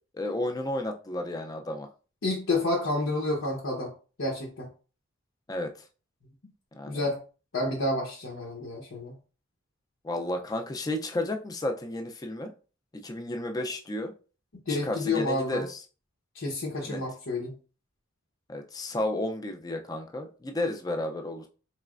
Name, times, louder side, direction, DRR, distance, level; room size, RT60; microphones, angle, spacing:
voice 1, 0.1-1.9 5.5-5.7 6.7-7.1 10.0-12.5 12.9-14.1 14.7-15.8 16.8-17.0 18.5-21.5, left 1 dB, 20° left, 5 dB, 0.4 m, -32 dB
voice 2, 2.2-3.9 4.2-4.7 6.9-7.2 7.5-9.1 14.7-15.6 16.3-17.5, left 2 dB, 80° left, -1 dB, 0.8 m, -29 dB
4.1 x 3.1 x 2.4 m, 0.36 s
head